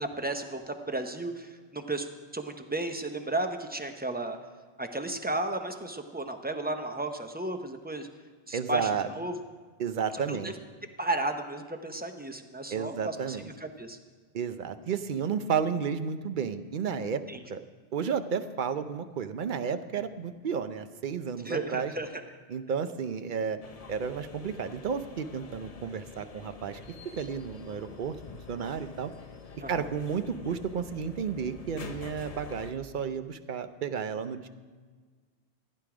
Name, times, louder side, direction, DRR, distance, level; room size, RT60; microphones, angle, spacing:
voice 1, 0.0-2.1 2.3-4.4 4.8-8.1 8.5-9.4 10.3-10.5 11.0-14.0 17.3-17.4 21.4-22.1 29.6-29.9, right 2 dB, 10° right, 6 dB, 0.7 m, -34 dB
voice 2, 8.5-9.1 9.8-10.5 12.7-13.5 14.3-17.2 17.5-17.6 17.9-21.9 22.5-23.6 23.9-26.8 27.2-28.2 28.5-29.1 29.7-34.5, right 6 dB, 55° right, 11 dB, 0.7 m, -32 dB
sound 1, 23.6-32.7, left 5 dB, 40° left, 0.8 m, -46 dB
15.0 x 10.0 x 4.9 m, 1.5 s
omnidirectional pair, 1.1 m